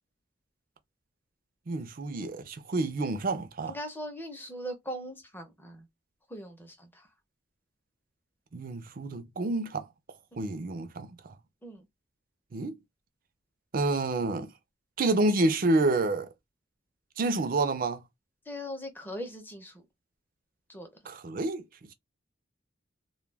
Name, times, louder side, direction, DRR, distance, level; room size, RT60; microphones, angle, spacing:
voice 1, 1.7-3.7 8.5-9.8 10.4-11.1 12.5-12.8 13.7-14.5 15.0-16.3 17.2-18.0 21.1-21.6, right 2 dB, 45° right, 0.4 m, -28 dB
voice 2, 3.7-5.9 6.3-7.1 11.6-11.9 18.5-19.8 20.7-20.9, equal, 10° left, 0.6 m, -40 dB
2.2 x 2.2 x 3.3 m
head